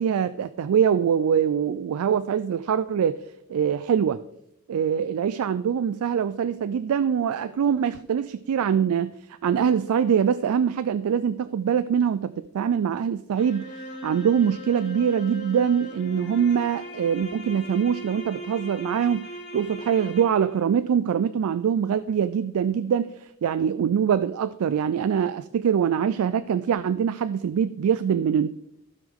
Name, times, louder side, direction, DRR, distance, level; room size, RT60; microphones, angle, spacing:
voice 1, 0.0-3.2 3.5-4.2 4.7-9.1 9.4-19.3 19.5-23.1 23.4-28.5, right 8 dB, 80° right, 14 dB, 0.3 m, -23 dB
sound 1, 13.4-20.6, right 1 dB, 60° left, 2.6 m, -39 dB
15.5 x 5.2 x 3.7 m, 0.80 s
head